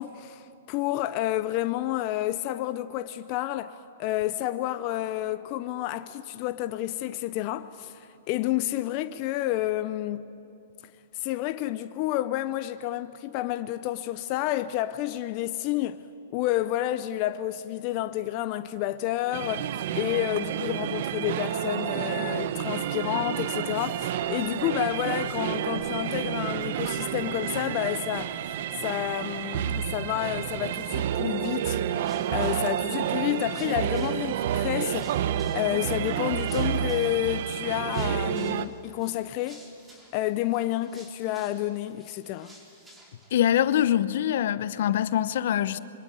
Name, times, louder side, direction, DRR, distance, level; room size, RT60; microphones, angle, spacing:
voice 1, 0.0-10.3 11.1-16.0 16.3-31.8 32.3-35.1 35.5-39.6 40.1-42.5, left 14 dB, 45° left, 0.8 m, -30 dB
sound 1, 19.3-38.7, right 10 dB, 60° right, 1.0 m, -30 dB
sound 2, 31.5-43.8, equal, 10° right, 5.0 m, -55 dB
voice 2, 43.3-45.8, left 11 dB, 65° left, 0.9 m, -24 dB
26.5 x 24.0 x 9.2 m
hypercardioid pair, 125°, 0 cm